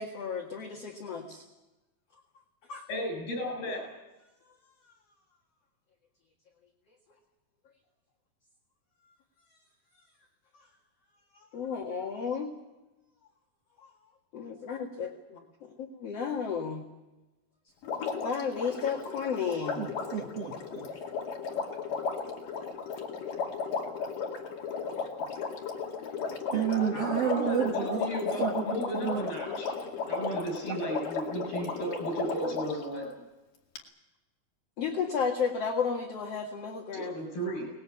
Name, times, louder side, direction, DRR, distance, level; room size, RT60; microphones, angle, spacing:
voice 1, 0.0-1.4 2.7-2.8 10.5-10.6 11.3-12.5 13.8-13.9 14.3-16.8 18.2-19.9 24.9-25.0 34.8-37.2, left 6 dB, 50° left, 1 dB, 2.5 m, -33 dB
voice 2, 2.9-3.8 26.5-29.7 30.1-33.1 36.9-37.7, equal, 85° left, 2 dB, 9.9 m, -34 dB
Water, 17.8-32.8 33.8-33.9, left 5 dB, 65° left, 3.9 m, -35 dB
voice 3, 19.8-20.9 26.5-28.1 28.4-28.6 28.9-29.2, right 8 dB, 50° right, 1 dB, 2.4 m, -30 dB
22.5 x 20.0 x 8.6 m, 1.1 s
omnidirectional pair, 4.3 m